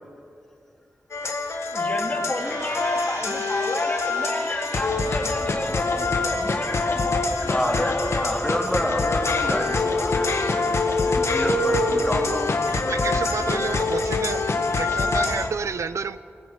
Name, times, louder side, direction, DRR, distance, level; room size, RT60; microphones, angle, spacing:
sound 1, 1.1-15.5, left 3 dB, 65° left, 2.0 m, -24 dB
voice 1, 1.7-8.5, left 2 dB, 35° left, 1 dB, 2.9 m, -31 dB
sound 2, 2.3-5.7 6.1-6.2, right 2 dB, 90° right, 4.9 m, -40 dB
voice 2, 7.5-8.0 8.2-12.9, equal, 5° left, 1 dB, 3.0 m, -29 dB
voice 3, 12.7-14.5 14.7-16.2, right 5 dB, 70° right, 14 dB, 0.8 m, -30 dB
28.5 x 19.5 x 5.2 m, 2.5 s
wide cardioid pair, 115°, 5 cm